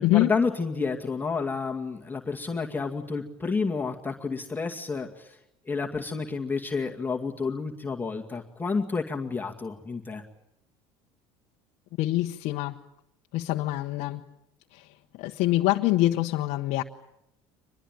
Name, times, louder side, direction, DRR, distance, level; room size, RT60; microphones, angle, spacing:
voice 1, 0.0-5.4 5.7-10.2, left 4 dB, 15° left, 1 dB, 2.1 m, -30 dB
voice 2, 12.0-12.8 13.3-14.2 14.7-16.8, left 16 dB, 65° left, 3 dB, 1.1 m, -25 dB
25.0 x 20.5 x 9.1 m, 0.82 s
supercardioid pair, 85°, 13 cm